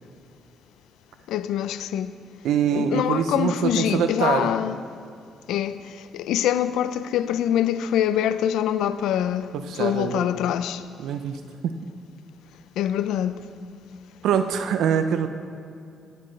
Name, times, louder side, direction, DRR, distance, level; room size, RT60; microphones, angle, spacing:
voice 1, 1.3-2.1 2.7-4.8 5.5-10.8 12.8-13.4, left 10 dB, 85° left, 0.4 m, -25 dB
voice 2, 2.4-4.5 9.5-10.3 11.0-11.8 14.2-15.3, right 7 dB, 80° right, 0.5 m, -24 dB
14.0 x 9.9 x 3.2 m
cardioid pair, 90°, 0 cm